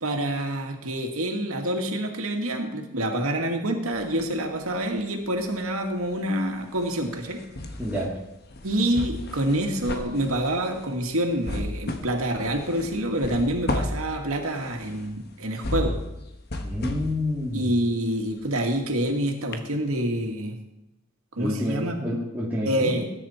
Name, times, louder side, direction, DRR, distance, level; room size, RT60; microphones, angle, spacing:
voice 1, 0.0-7.4 8.6-16.0 17.5-20.6 21.3-22.0 22.7-23.1, right 1 dB, 90° right, 3 dB, 2.2 m, -27 dB
sound 1, 3.9-5.1 5.4-19.1 19.5-19.6, left 1 dB, 50° left, 1.2 m, -34 dB
voice 2, 7.8-8.1 16.6-17.7 21.4-23.0, left 1 dB, 10° right, -7 dB, 2.2 m, -28 dB
19.5 x 9.9 x 4.4 m, 0.95 s
head